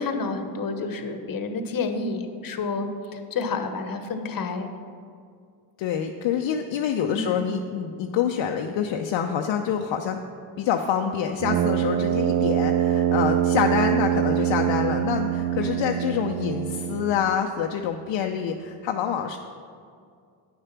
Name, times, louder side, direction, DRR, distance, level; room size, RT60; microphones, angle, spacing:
voice 1, 0.0-4.7 7.1-7.4, left 4 dB, 45° left, 7 dB, 1.2 m, -29 dB
voice 2, 5.8-10.2 10.6-19.4, left 8 dB, 60° left, 3 dB, 0.7 m, -26 dB
Brass instrument, 11.4-17.3, right 10 dB, 35° right, 0.4 m, -24 dB
8.9 x 6.6 x 5.9 m, 2.2 s
supercardioid pair, 65°, 49 cm